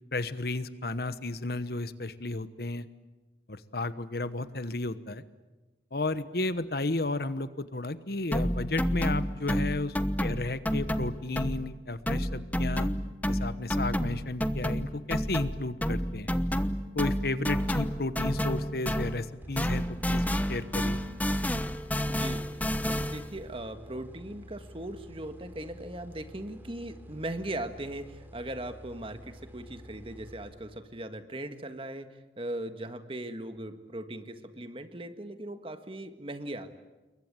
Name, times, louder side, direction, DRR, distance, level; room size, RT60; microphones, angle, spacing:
voice 1, 0.1-2.9 3.5-5.2 5.9-9.9 10.2-12.9 13.3-16.3 16.9-21.0, left 2 dB, 60° left, 13 dB, 1.2 m, -33 dB
sound 1, 8.3-11.8 12.1-19.3 19.6-23.3, equal, 10° left, 1.0 m, -30 dB
sound 2, 19.4-31.1, equal, 10° right, 3.7 m, -49 dB
voice 2, 22.1-22.4 22.8-36.7, right 1 dB, 30° right, 8 dB, 1.8 m, -39 dB
28.5 x 22.5 x 9.1 m, 1.2 s
head